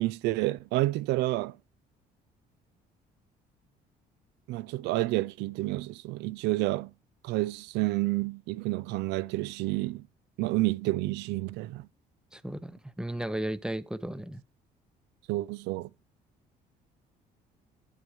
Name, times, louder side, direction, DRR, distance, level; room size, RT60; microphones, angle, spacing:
voice 1, 0.0-1.6 4.5-6.9 7.2-10.1 10.4-11.9 15.3-15.9, right 18 dB, 90° right, 0.5 m, -29 dB
voice 2, 12.3-14.4, right 1 dB, 5° right, 0.6 m, -35 dB
11.5 x 4.6 x 4.8 m
cardioid pair, 110°, 17 cm